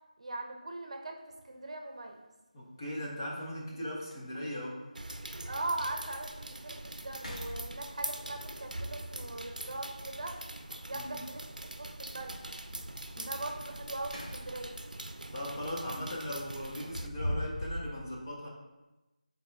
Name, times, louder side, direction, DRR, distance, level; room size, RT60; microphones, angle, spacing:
voice 1, 0.2-2.2 5.5-10.4 10.8-11.4 11.8-12.4 13.2-14.7, right 2 dB, 50° right, 3 dB, 0.8 m, -40 dB
sound 1, 1.3-1.4 3.2-3.3 3.7-3.8 4.0-4.6 5.2-5.3 5.8-5.9 6.3-6.7 7.1-8.2 10.3-10.9 13.7-14.7 15.1-15.3 16.6-17.9, equal, 70° left, 1.4 m, -40 dB
voice 2, 2.5-4.8 10.9-11.2 13.1-13.3 15.3-18.5, left 1 dB, 30° left, -5 dB, 1.4 m, -39 dB
sound 2, 4.9-17.1, right 1 dB, 90° right, 0.5 m, -43 dB
7.0 x 4.1 x 3.6 m, 1.1 s
figure-of-eight pair, 170°, 4 cm